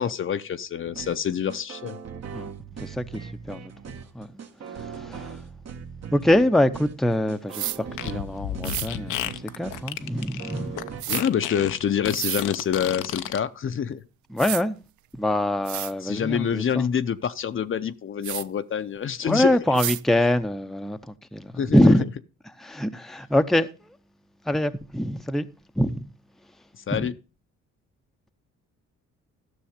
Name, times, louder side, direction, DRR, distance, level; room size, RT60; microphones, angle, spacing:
voice 1, 0.0-2.0 11.1-14.0 16.0-19.5 21.6-21.9 26.9-27.1, left 8 dB, 45° left, 0.6 m, -26 dB
sound 1, 0.8-11.0, right 6 dB, 55° right, 1.4 m, -40 dB
voice 2, 2.8-4.3 4.7-5.4 6.1-11.0 14.3-14.8 15.1-16.9 19.2-22.0 22.6-23.9 24.5-25.5 25.8-26.1 26.9-27.1, left 1 dB, ahead, 0.6 m, -24 dB
sound 2, 7.5-7.8 8.6-8.9 11.0-11.2 12.1-12.4 13.9-14.0 14.4-14.6 15.3-15.4 15.7-15.9 18.2-18.4 19.8-20.0, right 15 dB, 75° right, 0.4 m, -30 dB
Fart, 7.9-13.4, left 12 dB, 90° left, 0.7 m, -32 dB
13.0 x 6.3 x 5.0 m
cardioid pair, 90°, 30 cm